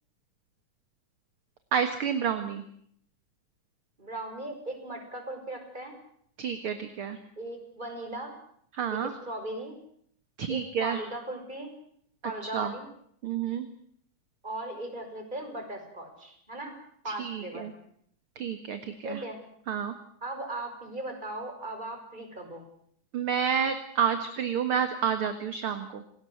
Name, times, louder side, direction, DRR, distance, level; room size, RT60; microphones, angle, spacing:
voice 1, 1.7-2.6 6.4-7.2 8.7-9.1 10.4-11.0 12.4-12.7 13.2-13.7 17.1-17.7 18.4-19.2 19.7-19.9 23.1-26.0, right 7 dB, 50° right, 8 dB, 2.3 m, -29 dB
voice 2, 4.0-6.0 7.4-8.4 8.9-9.7 10.5-11.7 12.2-12.9 14.4-16.8 17.0-17.7 19.0-19.4 20.2-22.7, right 1 dB, 15° right, 4 dB, 6.3 m, -38 dB
28.0 x 20.0 x 8.0 m, 0.67 s
omnidirectional pair, 3.6 m